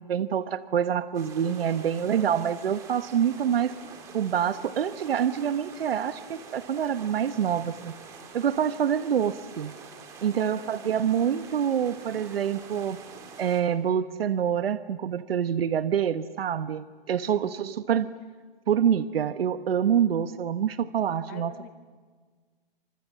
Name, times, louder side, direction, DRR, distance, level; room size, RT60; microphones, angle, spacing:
voice 1, 0.1-3.7 4.1-7.9 8.3-9.7 10.2-13.0 13.4-18.1 18.7-21.5, right 8 dB, 80° right, 13 dB, 1.1 m, -26 dB
sound 1, 1.1-13.6, right 5 dB, 10° right, 1.7 m, -46 dB
voice 2, 10.3-10.7 17.2-17.6 21.3-21.7, left 10 dB, 20° left, 8 dB, 1.5 m, -46 dB
29.5 x 26.5 x 7.5 m, 1.5 s
hypercardioid pair, 180°, 29 cm